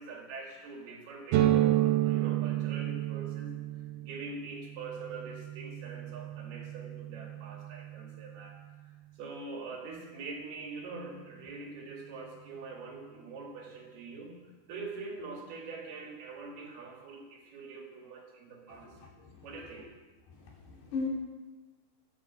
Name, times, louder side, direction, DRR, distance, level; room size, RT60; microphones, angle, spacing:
voice 1, 0.0-3.5 4.0-8.9 9.2-18.9 19.4-19.9, right 4 dB, 60° right, 0 dB, 4.1 m, -44 dB
sound 1, 1.3-8.9, right 14 dB, 85° right, 3.1 m, -31 dB
voice 2, 19.0-19.5 20.7-21.1, left 4 dB, 65° left, -3 dB, 5.2 m, -36 dB
15.5 x 11.5 x 7.6 m, 1.2 s
omnidirectional pair, 5.2 m